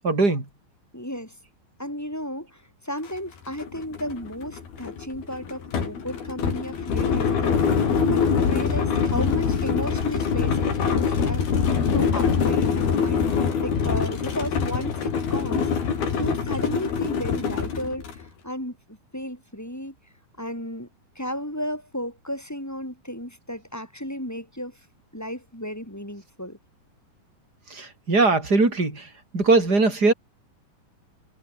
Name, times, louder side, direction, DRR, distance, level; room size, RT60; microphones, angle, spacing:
voice 1, 0.0-0.4 27.7-29.1 29.3-30.1, right 3 dB, 25° right, 6.4 m, -20 dB
voice 2, 0.9-1.4 1.8-15.9 16.2-20.0 20.4-20.9 21.2-24.8 25.1-26.6, equal, 5° left, 5.5 m, -34 dB
sound 1, 3.1-3.2 3.5-18.2, left 6 dB, 90° left, 6.3 m, -24 dB
omnidirectional pair, 4.2 m